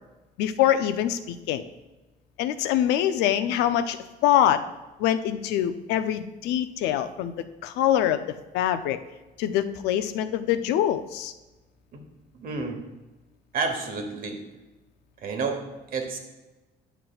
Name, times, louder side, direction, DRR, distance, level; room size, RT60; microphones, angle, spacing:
voice 1, 0.4-1.6 2.4-4.0 4.2-4.6 5.0-7.3 7.6-8.2 8.5-9.0 9.4-11.3, left 11 dB, 90° left, 10 dB, 0.5 m, -24 dB
voice 2, 12.3-12.8 13.5-14.4 15.2-16.2, right 4 dB, 60° right, 5 dB, 1.1 m, -30 dB
9.2 x 5.9 x 2.3 m, 1.1 s
cardioid pair, 110°, 17 cm